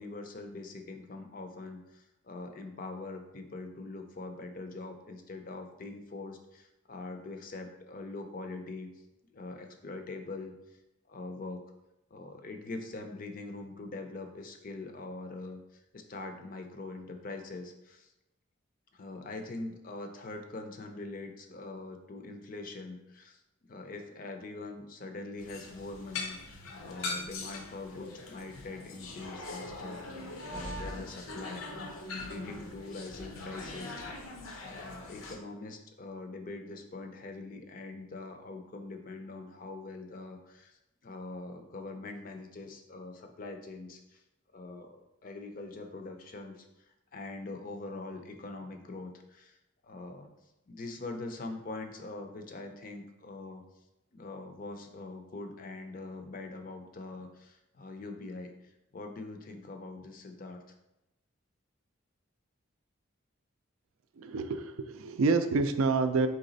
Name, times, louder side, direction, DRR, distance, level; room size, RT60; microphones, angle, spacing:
voice 1, 0.0-8.9 9.3-10.6 11.1-11.6 12.1-18.1 18.9-23.4 23.7-30.0 30.5-31.7 32.2-34.0 34.6-44.2 44.5-46.7 47.1-49.6 49.8-50.3 50.7-53.6 54.1-60.6, left 3 dB, 40° left, 5 dB, 0.5 m, -43 dB
sound 1, 25.4-35.4, left 2 dB, 85° left, 0.7 m, -41 dB
voice 2, 64.2-66.3, right 4 dB, 85° right, 9 dB, 0.4 m, -28 dB
4.0 x 3.2 x 3.9 m, 0.93 s
head